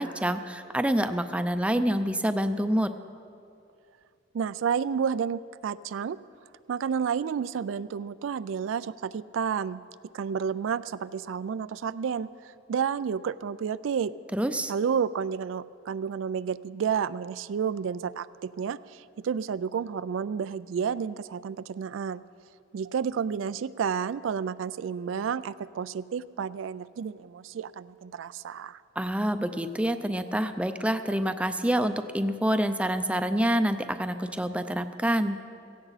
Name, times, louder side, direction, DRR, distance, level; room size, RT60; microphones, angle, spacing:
voice 1, 0.0-2.9 14.3-14.7 29.0-35.4, right 1 dB, 5° right, 9 dB, 0.5 m, -27 dB
voice 2, 4.3-6.2 6.7-9.8 10.1-14.1 14.7-22.2 22.7-28.8, right 7 dB, 85° right, 16 dB, 0.3 m, -31 dB
17.0 x 16.0 x 4.1 m, 2.4 s
head